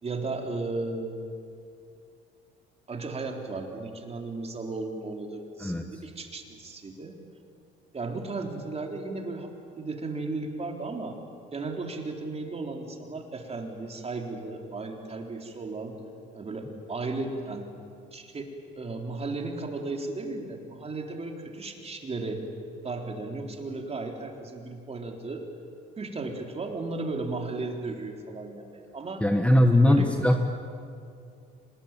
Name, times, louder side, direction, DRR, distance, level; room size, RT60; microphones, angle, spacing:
voice 1, 0.0-1.3 2.9-7.2 7.9-11.2 11.5-16.0 16.3-17.7 18.1-18.4 18.8-22.5 22.8-25.5 26.0-29.2 29.6-30.1, right 3 dB, 30° right, 3 dB, 3.8 m, -35 dB
voice 2, 29.2-30.4, left 1 dB, 5° left, 5 dB, 1.6 m, -20 dB
25.5 x 20.5 x 9.1 m, 2.4 s
cardioid pair, 95°, 21 cm